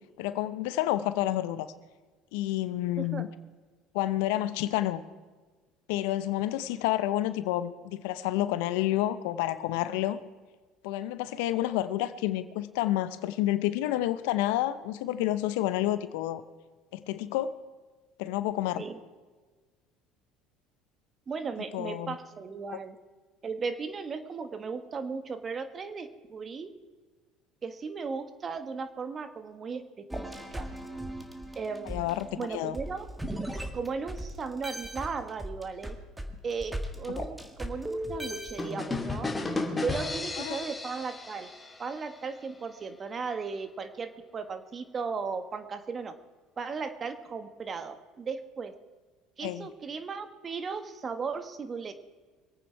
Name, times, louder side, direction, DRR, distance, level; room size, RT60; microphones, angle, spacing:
voice 1, 0.2-1.7 2.3-3.3 3.9-5.0 5.9-10.2 10.8-16.4 16.9-17.5 18.2-18.9 21.7-22.2 31.9-32.8 37.2-37.3 40.4-40.6 49.4-49.7, left 14 dB, 80° left, 13 dB, 0.8 m, -29 dB
voice 2, 21.3-23.0 23.4-26.7 27.6-30.0 30.5-30.7 31.5-32.1 32.4-33.0 33.7-36.0 36.4-39.3 39.8-41.5 41.8-46.1 46.6-48.7 49.4-51.9, right 5 dB, 35° right, 10 dB, 1.5 m, -36 dB
sound 1, 30.1-34.3 34.6-39.0, right 1 dB, 10° right, 1.9 m, -37 dB
sound 2, 38.6-42.3, left 3 dB, 20° left, 2.3 m, -34 dB
24.0 x 9.0 x 4.7 m, 1.4 s
supercardioid pair, 85°, 0 cm